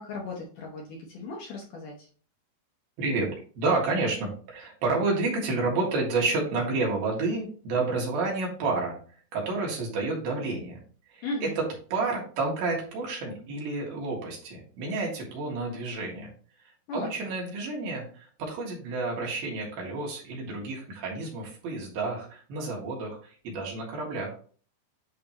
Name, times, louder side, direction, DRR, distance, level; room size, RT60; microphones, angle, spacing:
voice 1, 0.0-2.1 11.2-11.6 16.9-17.1, left 2 dB, 70° left, -1 dB, 2.1 m, -36 dB
voice 2, 3.0-3.3 3.6-9.0 9.3-10.8 11.1-11.6 11.9-16.3 16.9-24.4, right 3 dB, 65° right, -2 dB, 3.5 m, -30 dB
10.5 x 3.4 x 2.9 m, 0.42 s
omnidirectional pair, 4.7 m